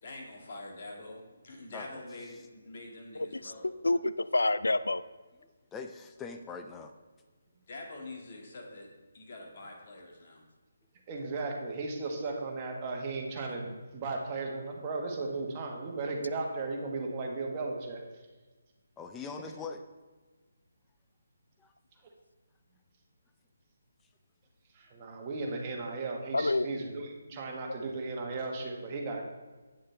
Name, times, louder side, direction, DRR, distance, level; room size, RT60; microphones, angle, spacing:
voice 1, 0.0-3.7 7.7-10.4, left 2 dB, 45° left, 0 dB, 2.1 m, -45 dB
voice 2, 3.2-3.5 3.8-5.0 26.3-26.7, left 2 dB, 80° left, 15 dB, 0.4 m, -28 dB
voice 3, 5.7-6.9 19.0-19.8 21.6-21.7, left 5 dB, 10° left, 6 dB, 0.6 m, -42 dB
voice 4, 11.1-18.0 24.7-29.2, right 3 dB, 30° right, 0 dB, 1.4 m, -36 dB
8.6 x 7.4 x 3.4 m, 1.3 s
figure-of-eight pair, 150°, 0 cm